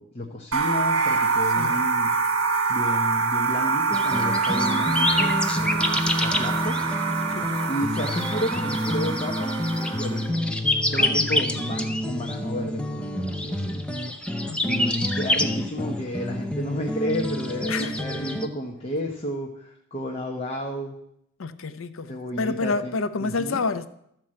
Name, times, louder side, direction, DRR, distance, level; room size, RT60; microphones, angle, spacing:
voice 1, 0.0-2.2 2.7-6.8 7.7-9.5 9.8-10.4 10.8-13.8 14.6-21.0 22.1-23.6, equal, 30° left, 0.9 m, -32 dB
sound 1, 0.5-10.2, right 4 dB, 65° right, 1.7 m, -25 dB
sound 2, 3.9-18.5, left 1 dB, 5° left, 0.6 m, -27 dB
voice 2, 11.1-11.5 14.4-14.9 17.7-18.0 21.4-23.9, left 3 dB, 65° left, 0.6 m, -29 dB
13.0 x 4.6 x 7.5 m
head